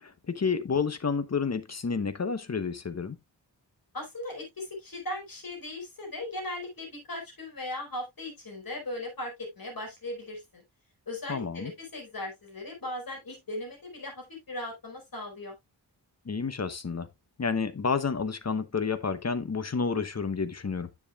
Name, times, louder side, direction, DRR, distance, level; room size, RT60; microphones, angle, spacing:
voice 1, 0.0-3.2 11.3-11.7 16.2-17.1 17.4-20.9, left 5 dB, 40° left, 0.9 m, -30 dB
voice 2, 3.9-10.6 11.1-15.6, left 1 dB, 55° left, 4.9 m, -38 dB
9.9 x 7.2 x 2.4 m
wide cardioid pair, 110°, 42 cm